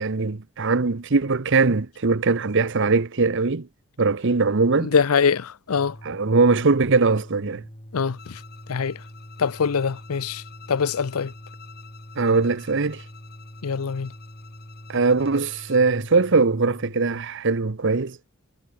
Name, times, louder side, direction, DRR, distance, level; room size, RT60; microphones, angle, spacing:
voice 1, 0.0-3.7 4.0-4.9 6.0-7.6 12.2-13.0 14.9-18.2, right 4 dB, 60° right, 0.9 m, -21 dB
voice 2, 4.8-5.9 7.9-8.3 8.7-9.0 9.4-10.4 10.7-11.3 13.6-14.1, left 6 dB, 85° left, 0.6 m, -23 dB
sound 1, 5.8-17.2, equal, 25° left, 6.5 m, -44 dB
Bowed string instrument, 8.2-15.9, left 8 dB, 45° left, 5.1 m, -50 dB
head